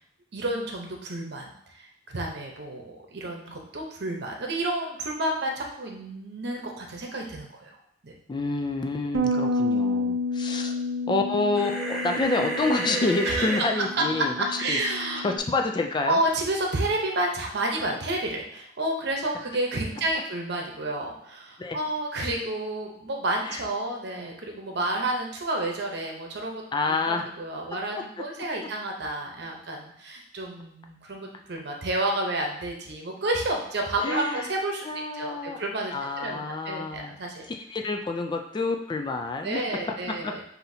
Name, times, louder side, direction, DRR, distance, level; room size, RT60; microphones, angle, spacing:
voice 1, 0.3-7.8 8.0-8.2 13.2-13.5 13.8-15.3 16.0-26.6 27.1-34.9 35.1-37.5 39.4-40.4, right 1 dB, 65° right, 1 dB, 0.8 m, -30 dB
voice 2, 8.3-10.8 11.1-16.2 21.6-21.8 23.5-23.6 26.7-27.3 34.0-34.5 34.9-35.6 35.9-37.2 37.5-39.6 40.1-40.3, left 3 dB, 25° left, 4 dB, 0.3 m, -28 dB
Bass guitar, 9.1-15.4, left 2 dB, 85° right, 0.4 m, -30 dB
sound 1, 11.5-13.6, right 2 dB, ahead, 0.8 m, -30 dB
5.8 x 2.7 x 2.7 m, 0.74 s
head